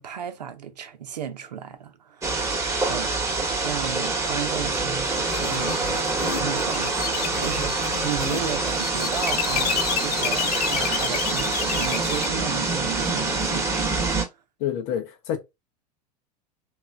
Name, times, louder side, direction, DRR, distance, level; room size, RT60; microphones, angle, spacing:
voice 1, 0.0-2.5 2.9-14.1, right 9 dB, 80° right, 0.7 m, -35 dB
sound 1, 2.2-14.3, right 3 dB, 15° right, 1.2 m, -26 dB
sound 2, 5.3-12.3, left 8 dB, 70° left, 0.6 m, -30 dB
voice 2, 14.6-15.4, left 9 dB, 55° left, 0.9 m, -27 dB
3.2 x 3.0 x 2.3 m
figure-of-eight pair, 80°, 21 cm